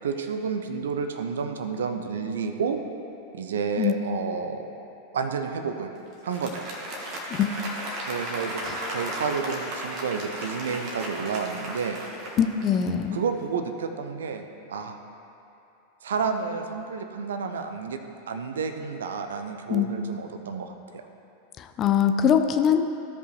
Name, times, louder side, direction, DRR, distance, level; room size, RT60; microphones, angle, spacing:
voice 1, 0.0-2.8 3.3-4.7 5.1-5.9 6.2-6.7 8.1-12.0 13.1-14.4 14.7-15.0 16.0-18.0 18.3-21.0, right 5 dB, 65° right, 7 dB, 0.6 m, -30 dB
Applause, 6.1-13.1, right 1 dB, 40° right, 1.5 m, -35 dB
voice 2, 12.4-13.2 19.7-19.9 21.6-22.8, left 8 dB, 30° left, 6 dB, 0.5 m, -22 dB
15.0 x 5.3 x 3.2 m, 2.8 s
figure-of-eight pair, 90°, 0 cm